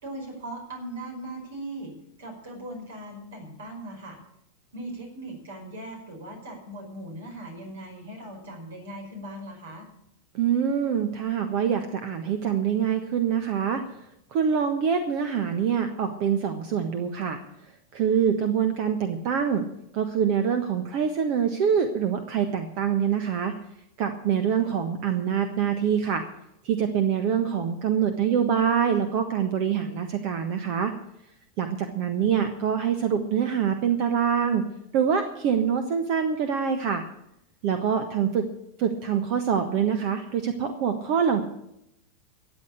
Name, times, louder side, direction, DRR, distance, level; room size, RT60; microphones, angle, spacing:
voice 1, 0.0-1.9 2.2-4.2 4.7-9.9 24.6-24.7 32.0-32.3, right 1 dB, 65° right, 3 dB, 5.0 m, -39 dB
voice 2, 10.3-13.8 14.3-17.4 17.9-19.6 19.9-23.5 24.0-26.2 26.6-30.9 31.6-34.7 34.9-37.0 37.6-38.5 38.8-41.4, right 7 dB, 50° right, 8 dB, 1.3 m, -25 dB
14.0 x 8.3 x 8.2 m, 0.80 s
figure-of-eight pair, 90°, 0 cm